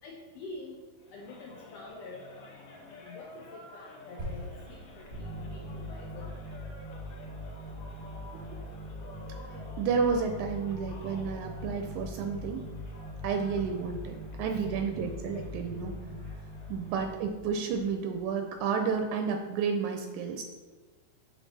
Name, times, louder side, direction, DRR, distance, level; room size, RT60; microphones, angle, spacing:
voice 1, 0.0-0.8 1.1-2.3 3.0-6.3 14.3-14.7, left 3 dB, 85° left, 0 dB, 1.4 m, -47 dB
sound 1, 1.0-17.2, left 3 dB, 65° left, 1.9 m, -51 dB
sound 2, 4.2-8.6, equal, 30° right, 0.6 m, -46 dB
sound 3, 5.1-18.3, equal, 40° left, 1.4 m, -42 dB
voice 2, 9.8-12.6 13.2-15.9 16.7-20.4, right 5 dB, 80° right, 4 dB, 1.9 m, -31 dB
5.8 x 4.2 x 4.0 m, 1.3 s
omnidirectional pair, 3.5 m